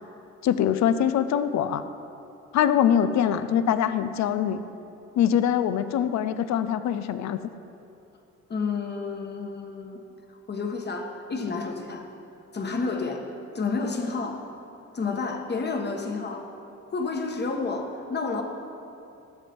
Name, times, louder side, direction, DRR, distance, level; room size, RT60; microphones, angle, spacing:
voice 1, 0.4-1.8 2.5-4.6 5.2-7.4, left 9 dB, 65° left, 12 dB, 0.6 m, -23 dB
voice 2, 8.5-10.0 10.5-12.1 12.5-13.3 13.5-14.4 14.9-16.5 16.9-18.4, left 4 dB, 35° left, 3 dB, 1.3 m, -30 dB
13.5 x 7.4 x 4.4 m, 2.7 s
cardioid pair, 90°, 30 cm